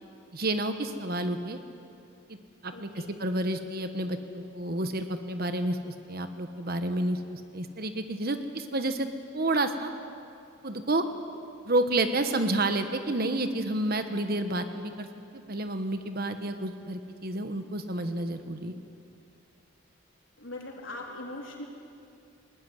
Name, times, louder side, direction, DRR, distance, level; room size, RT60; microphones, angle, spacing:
voice 1, 0.3-1.6 2.3-2.4 2.6-9.1 9.3-9.9 10.6-11.1 11.6-15.1 15.3-18.8, right 2 dB, 50° right, 8 dB, 1.3 m, -30 dB
voice 2, 2.7-3.2 20.4-21.6, left 2 dB, 75° left, 0 dB, 3.9 m, -40 dB
21.0 x 19.0 x 9.6 m, 2.5 s
head